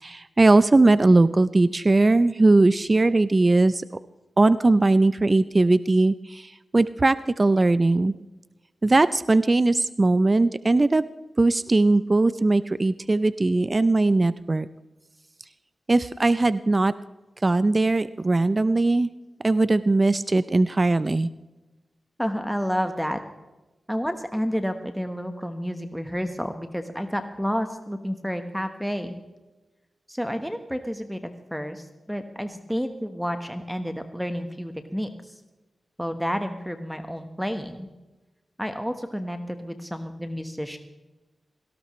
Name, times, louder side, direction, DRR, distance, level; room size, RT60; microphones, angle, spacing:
voice 1, 0.0-3.8 4.4-8.1 8.8-11.0 11.4-14.7 15.9-16.9 17.4-19.1 19.4-21.3, right 2 dB, 35° right, 14 dB, 0.5 m, -20 dB
voice 2, 22.2-23.2 23.9-29.2 30.1-31.2 31.5-35.3 36.0-37.9 38.6-40.8, equal, ahead, 7 dB, 1.2 m, -30 dB
18.0 x 16.5 x 3.2 m, 1.1 s
cardioid pair, 60°, 0 cm